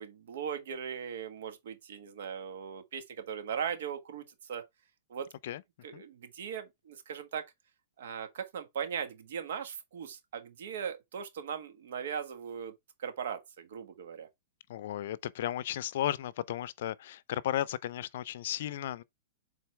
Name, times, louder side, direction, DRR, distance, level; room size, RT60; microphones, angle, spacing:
voice 1, 0.0-4.6 5.1-5.3 5.8-7.4 8.0-12.7 13.0-14.3, right 7 dB, 70° right, 1.5 m, -39 dB
voice 2, 14.7-19.0, left 12 dB, 60° left, 0.5 m, -34 dB
7.8 x 3.9 x 3.4 m
hypercardioid pair, 150°, 0 cm